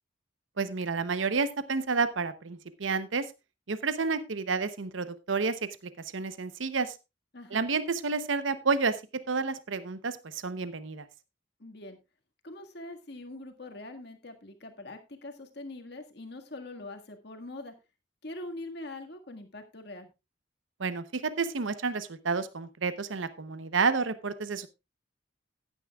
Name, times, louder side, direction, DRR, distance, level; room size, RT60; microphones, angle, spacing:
voice 1, 0.6-3.3 3.7-5.6 6.1-7.0 7.5-11.0 20.8-24.7, right 4 dB, 80° right, 13 dB, 0.8 m, -30 dB
voice 2, 7.3-7.6 11.6-12.0 12.4-17.7 18.2-20.1, left 2 dB, 55° left, 5 dB, 1.8 m, -43 dB
15.5 x 9.9 x 2.3 m, 0.25 s
head